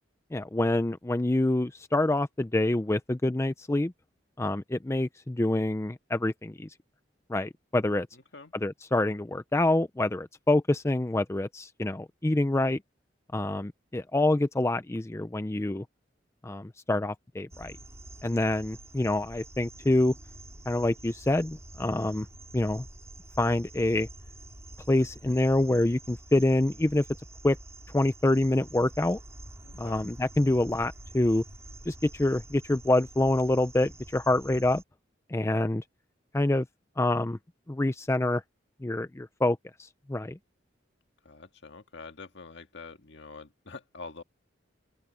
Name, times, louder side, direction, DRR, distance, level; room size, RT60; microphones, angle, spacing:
voice 1, 0.3-3.9 4.4-6.7 7.3-8.1 8.6-12.8 13.3-15.8 16.4-17.8 18.2-20.1 20.7-22.3 22.5-22.8 23.4-24.1 24.9-27.0 27.4-27.6 27.9-29.2 29.8-31.4 31.9-34.8 35.3-35.8 36.3-36.6 37.0-37.4 37.7-38.4 38.8-40.4, left 2 dB, 15° left, 0.5 m, -26 dB
voice 2, 8.1-8.5 29.6-30.1 41.2-44.2, left 4 dB, 65° left, 2.0 m, -46 dB
sound 1, 17.5-34.8, right 1 dB, 15° right, 4.6 m, -47 dB
open air
head